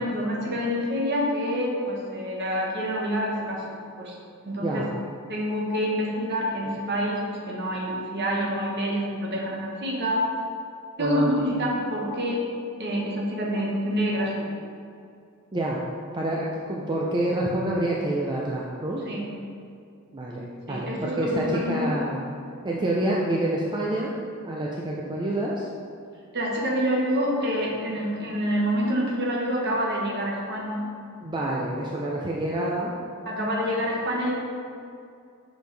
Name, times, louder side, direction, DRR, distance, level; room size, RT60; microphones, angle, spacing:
voice 1, 0.0-4.1 4.4-4.9 5.3-10.3 11.0-12.4 12.8-14.5 19.0-19.3 20.7-21.9 26.3-30.9 33.3-34.3, equal, 50° right, -3 dB, 1.2 m, -27 dB
voice 2, 11.0-11.3 15.5-15.8 16.1-19.0 20.1-22.2 22.6-24.1 24.4-25.7 31.2-32.9, right 1 dB, 20° right, -4 dB, 0.4 m, -27 dB
6.1 x 5.2 x 3.3 m, 2.4 s
head